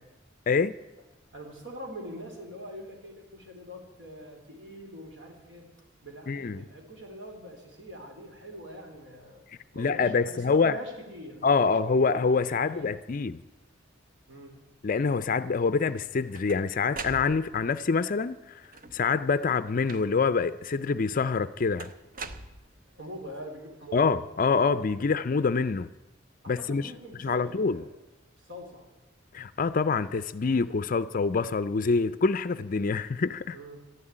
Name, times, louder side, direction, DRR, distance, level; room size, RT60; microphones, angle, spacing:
voice 1, 1.3-5.6 6.0-9.4 9.7-12.2 12.5-12.9 14.3-14.6 22.9-24.1 26.4-27.9 28.4-28.8 33.5-33.8, equal, 65° right, 3.8 m, -43 dB
voice 2, 6.3-6.6 9.8-10.8 11.4-13.4 14.8-18.6 18.9-21.9 23.9-25.9 26.5-26.9 27.2-27.8 29.3-33.6, left 4 dB, 45° left, 0.4 m, -26 dB
sound 1, 15.9-17.8 18.6-19.2 19.9-20.4 21.8-23.1, right 3 dB, 45° right, 0.8 m, -42 dB
12.5 x 11.5 x 9.8 m
head